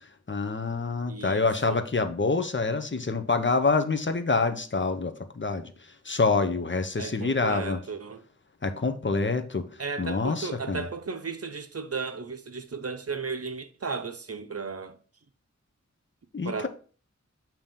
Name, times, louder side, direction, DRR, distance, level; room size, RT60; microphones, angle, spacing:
voice 1, 0.3-5.7 6.0-7.8 8.6-9.6 10.0-10.8 16.3-16.7, left 3 dB, 40° left, 0.8 m, -26 dB
voice 2, 1.1-1.8 7.0-8.2 9.8-15.0 16.4-16.7, right 4 dB, 55° right, 0.7 m, -35 dB
7.3 x 3.0 x 5.2 m
wide cardioid pair, 40°, 29 cm